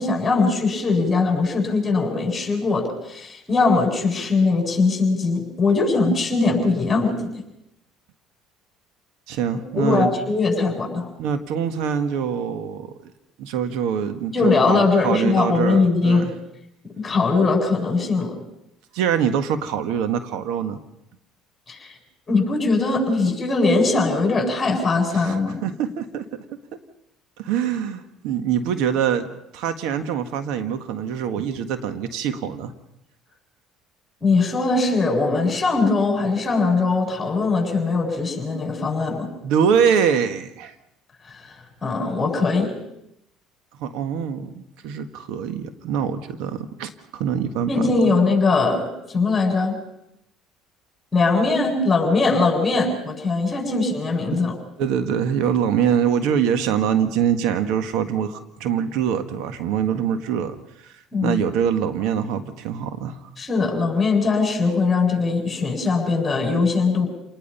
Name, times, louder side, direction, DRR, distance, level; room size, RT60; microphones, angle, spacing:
voice 1, 0.0-7.3 9.5-11.1 14.3-16.3 16.8-18.4 21.7-21.9 22.3-25.6 34.2-39.3 41.2-41.5 41.8-42.8 47.7-49.8 51.1-54.5 61.1-61.4 63.4-67.1, left 3 dB, 20° left, 2 dB, 7.7 m, -21 dB
voice 2, 9.3-10.1 11.2-13.1 13.4-16.3 18.9-20.8 25.1-26.2 27.4-29.3 29.5-32.7 39.1-40.7 43.8-47.7 54.3-54.4 54.8-60.6 60.8-60.9 61.2-63.2, right 8 dB, 80° right, 9 dB, 1.6 m, -24 dB
28.5 x 20.0 x 5.7 m, 0.82 s
supercardioid pair, 100°, 0 cm